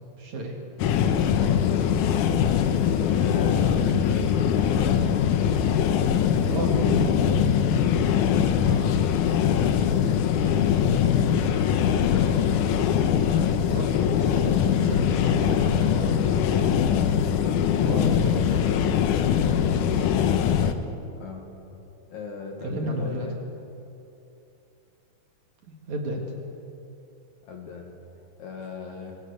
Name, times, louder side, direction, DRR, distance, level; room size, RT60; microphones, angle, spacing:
voice 1, 0.2-0.6 6.5-7.4 13.7-16.7 17.8-19.0 22.6-23.3 25.6-26.2, equal, 55° right, 1 dB, 2.9 m, -32 dB
sound 1, 0.8-20.7, left 8 dB, 70° left, 2.0 m, -22 dB
voice 2, 2.1-5.5 8.6-12.7 21.2-21.5 22.1-23.4 27.4-29.2, left 4 dB, 55° left, 2 dB, 2.7 m, -39 dB
23.0 x 16.5 x 8.1 m, 2.8 s
omnidirectional pair, 4.6 m